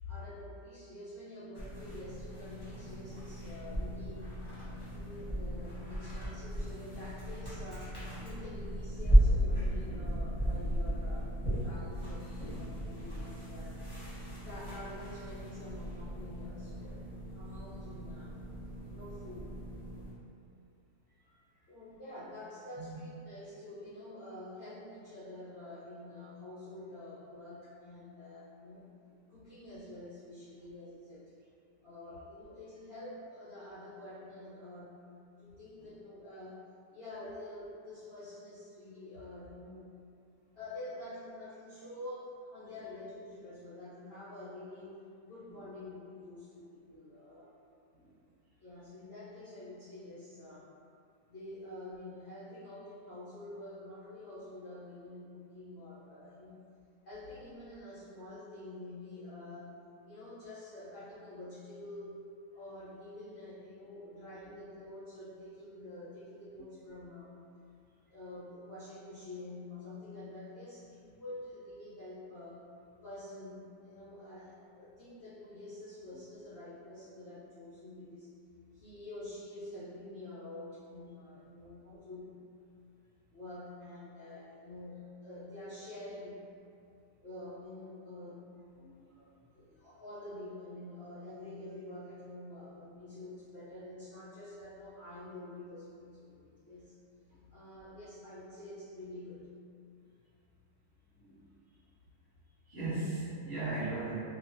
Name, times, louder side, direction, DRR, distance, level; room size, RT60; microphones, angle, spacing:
voice 1, 0.1-4.3 4.6-13.8 14.4-17.1 17.3-18.4 18.9-19.6 21.7-28.9 29.3-31.3 31.8-35.0 35.4-36.6 36.9-40.0 40.5-47.6 48.6-50.7 51.3-56.6 57.0-62.2 62.5-67.4 68.1-72.7 73.0-78.3 78.7-82.4 83.3-86.5 87.2-88.5 89.5-97.0 97.5-99.5, left 1 dB, 70° left, -11 dB, 0.6 m, -47 dB
sound 1, 1.5-20.1, equal, 25° left, 0.7 m, -34 dB
voice 2, 88.8-89.3 89.6-89.7 97.3-97.4 101.1-101.4 102.6-104.1, right 2 dB, 40° right, -14 dB, 1.1 m, -39 dB
3.0 x 2.1 x 2.5 m, 2.4 s
omnidirectional pair, 1.9 m